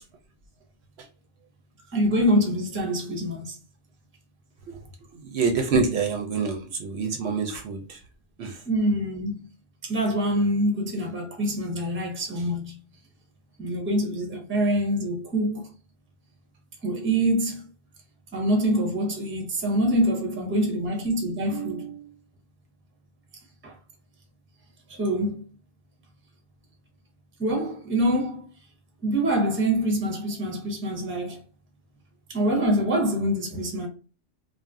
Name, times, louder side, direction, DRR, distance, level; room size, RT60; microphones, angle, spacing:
voice 1, 1.9-3.6 8.7-9.4 9.8-12.8 13.6-15.6 16.8-17.6 18.3-22.1 23.6-23.7 25.0-25.4 27.4-28.4 29.0-31.4 32.3-33.9, equal, 15° right, 0.5 m, -25 dB
voice 2, 5.3-8.0 8.4-8.6, right 4 dB, 65° right, 0.8 m, -26 dB
2.4 x 2.0 x 3.4 m
omnidirectional pair, 1.2 m